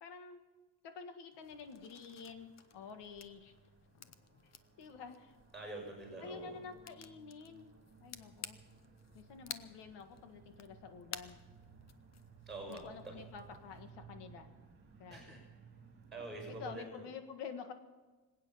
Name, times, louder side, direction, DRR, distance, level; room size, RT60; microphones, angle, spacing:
voice 1, 0.0-0.4 0.8-3.5 4.8-5.4 6.2-7.7 8.0-8.6 9.1-11.4 12.7-14.5 15.0-15.4 16.5-17.7, left 5 dB, 85° left, 7 dB, 1.8 m, -49 dB
sound 1, 1.3-13.9, left 8 dB, 40° left, 0.8 m, -54 dB
sound 2, 1.5-16.8, right 6 dB, 30° right, 2.3 m, -59 dB
voice 2, 5.5-6.6 12.5-13.1 15.1-15.4 16.1-17.1, right 2 dB, ahead, 0 dB, 5.7 m, -46 dB
25.5 x 8.9 x 5.7 m, 1.3 s
cardioid pair, 125°, 40 cm